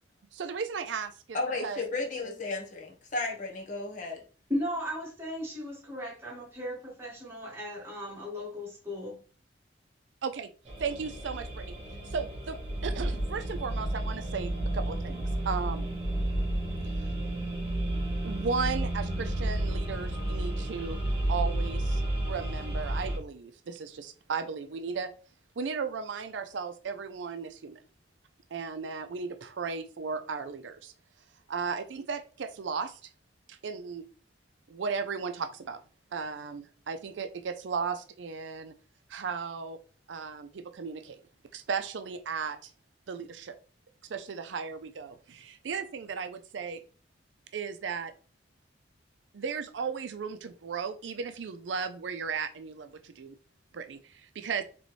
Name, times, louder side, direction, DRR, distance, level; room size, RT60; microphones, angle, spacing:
voice 1, 0.3-1.8 10.2-10.5 10.8-11.7 12.1-15.9 18.2-21.0 21.3-25.1 25.6-27.8 28.5-30.9 31.5-33.0 33.5-34.0 34.7-35.8 36.1-38.7 39.1-39.8 40.1-41.2 41.5-42.7 43.1-43.5 44.1-46.8 47.5-48.1 49.3-53.4 53.7-54.6, right 5 dB, 85° right, 9 dB, 0.5 m, -35 dB
voice 2, 1.3-4.2, left 3 dB, 45° left, 0 dB, 1.0 m, -33 dB
voice 3, 4.5-9.2, equal, 15° right, -4 dB, 1.6 m, -36 dB
sound 1, 10.7-23.2, right 1 dB, 30° right, 1.4 m, -31 dB
4.1 x 3.0 x 3.1 m, 0.39 s
head